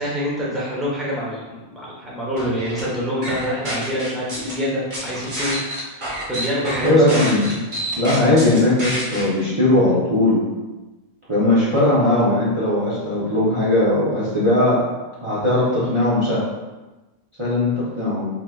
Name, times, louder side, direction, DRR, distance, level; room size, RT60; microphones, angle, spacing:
voice 1, 0.0-5.6 6.3-7.4, equal, ahead, -7 dB, 1.0 m, -26 dB
sound 1, 2.4-2.8 3.2-4.5 4.9-9.2, right 1 dB, 50° right, 1.3 m, -28 dB
voice 2, 6.8-7.6 8.0-10.5 11.3-14.8 15.2-16.4 17.4-18.3, left 1 dB, 30° right, -9 dB, 0.9 m, -18 dB
4.6 x 3.4 x 2.4 m, 1.1 s
omnidirectional pair, 1.1 m